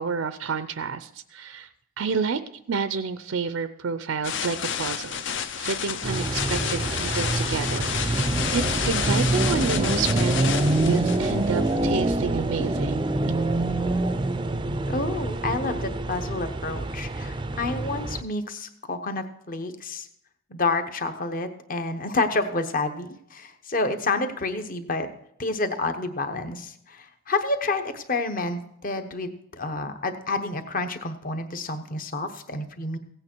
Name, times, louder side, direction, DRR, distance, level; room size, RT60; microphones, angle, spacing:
voice 1, 0.0-1.7 2.0-2.4 2.7-5.2 5.6-13.1, right 5 dB, 75° right, 11 dB, 0.5 m, -29 dB
sound 1, 4.2-11.9, left 8 dB, 55° left, 0.6 m, -30 dB
sound 2, 6.0-18.2, right 2 dB, 20° right, 0.4 m, -26 dB
voice 2, 14.9-20.1 20.5-25.1 25.4-33.0, left 3 dB, 40° left, 8 dB, 1.0 m, -29 dB
16.0 x 8.9 x 4.5 m, 0.72 s
head